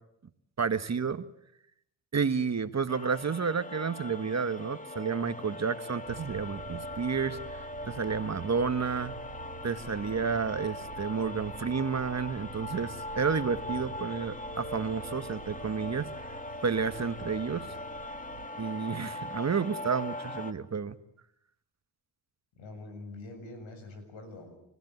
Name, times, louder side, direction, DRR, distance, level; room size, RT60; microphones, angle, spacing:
voice 1, 0.6-1.3 2.1-9.1 9.6-16.3 16.6-17.7 18.6-21.0, right 5 dB, 35° right, 11 dB, 1.5 m, -31 dB
sound 1, 2.9-20.5, left 2 dB, 15° left, 2.2 m, -41 dB
sound 2, 6.1-18.5, right 11 dB, 75° right, 1.9 m, -48 dB
voice 2, 22.6-24.6, left 2 dB, 85° left, 7 dB, 7.3 m, -45 dB
30.0 x 15.0 x 9.5 m, 0.79 s
supercardioid pair, 65°, 45 cm